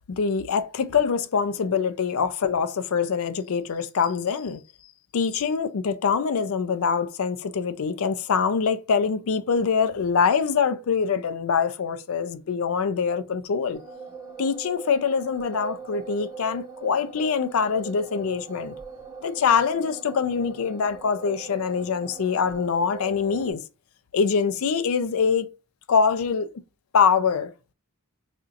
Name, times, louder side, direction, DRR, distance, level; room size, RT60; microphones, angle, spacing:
voice 1, 0.0-4.6 5.1-13.8 14.4-18.7 19.2-23.6 24.1-25.5 25.9-26.5 26.9-27.5, left 6 dB, 65° left, 0.4 m, -24 dB
sound 1, 13.7-23.5, right 4 dB, 15° right, 1.1 m, -41 dB
4.3 x 2.5 x 2.4 m
head